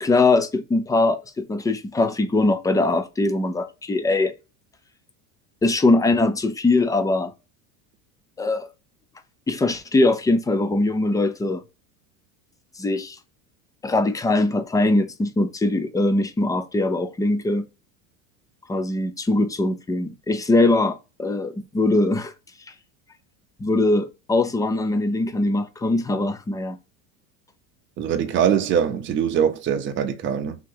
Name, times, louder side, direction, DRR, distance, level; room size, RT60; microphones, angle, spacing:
voice 1, 0.0-4.3 5.6-7.3 8.4-8.7 9.5-11.6 12.8-13.2 13.8-17.7 18.7-22.3 23.6-26.8, left 2 dB, 10° left, 0.4 m, -21 dB
voice 2, 28.0-30.6, right 8 dB, 30° right, 0.7 m, -22 dB
3.7 x 2.9 x 4.5 m
supercardioid pair, 115°, 41 cm